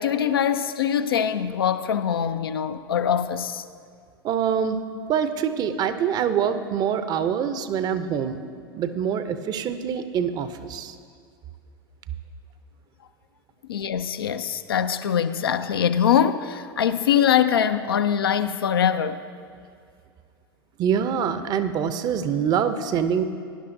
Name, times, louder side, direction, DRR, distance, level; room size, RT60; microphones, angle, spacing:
voice 1, 0.0-3.6 13.7-19.2, left 8 dB, 70° left, 0.5 m, -23 dB
voice 2, 4.2-4.8 5.1-8.4 8.7-10.9 20.8-23.2, right 8 dB, 30° right, 0.6 m, -25 dB
17.5 x 11.0 x 2.6 m
figure-of-eight pair, 85°, 13 cm